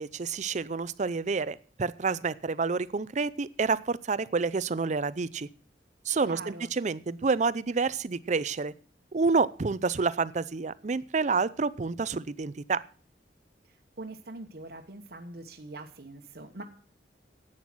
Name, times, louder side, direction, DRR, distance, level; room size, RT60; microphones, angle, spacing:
voice 1, 0.0-5.5 6.1-8.7 9.1-12.8, right 4 dB, 40° right, 18 dB, 0.5 m, -28 dB
voice 2, 6.2-6.7 14.0-16.6, right 2 dB, 60° right, 3 dB, 1.2 m, -43 dB
11.5 x 8.8 x 6.1 m, 0.43 s
head